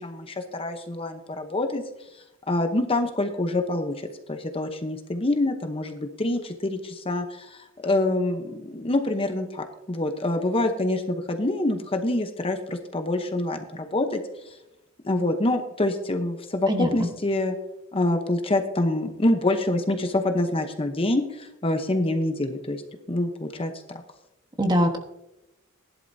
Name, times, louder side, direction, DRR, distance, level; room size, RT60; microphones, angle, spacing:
voice 1, 0.0-1.8 2.5-4.0 4.3-14.2 15.0-17.5 17.9-22.8 23.1-24.0, left 2 dB, 25° left, 6 dB, 0.8 m, -26 dB
voice 2, 16.7-17.1 24.6-25.0, equal, 20° right, 3 dB, 1.3 m, -22 dB
16.5 x 11.0 x 2.7 m, 0.89 s
head